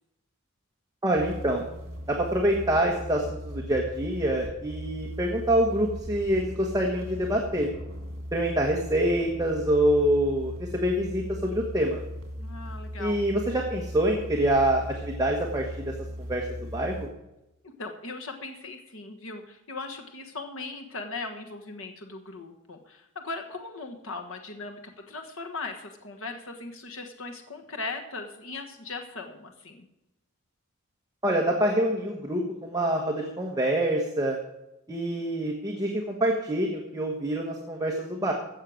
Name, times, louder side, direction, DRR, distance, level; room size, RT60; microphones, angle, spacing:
voice 1, 1.0-1.6 2.1-7.7 8.3-12.0 13.0-17.1 31.2-34.4 34.9-38.3, right 1 dB, 15° right, 0 dB, 1.3 m, -26 dB
sound 1, 1.1-17.1, equal, 60° right, 3.0 m, -38 dB
voice 2, 12.4-13.3 17.6-29.9, left 3 dB, 70° left, 4 dB, 1.4 m, -39 dB
16.0 x 6.6 x 6.4 m, 0.90 s
head